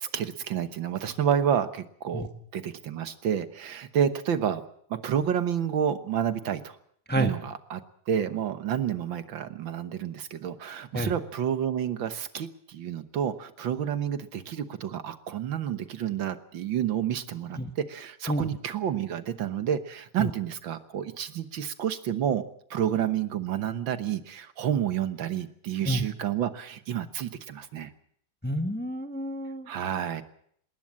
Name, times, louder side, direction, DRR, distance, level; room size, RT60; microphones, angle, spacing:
voice 1, 0.0-4.6 4.9-6.8 7.2-17.6 17.9-22.4 22.7-27.9 29.7-30.2, right 9 dB, 70° right, 11 dB, 1.9 m, -29 dB
voice 2, 28.4-29.7, right 1 dB, 5° left, 7 dB, 1.1 m, -29 dB
20.0 x 19.5 x 7.6 m, 0.66 s
omnidirectional pair, 2.2 m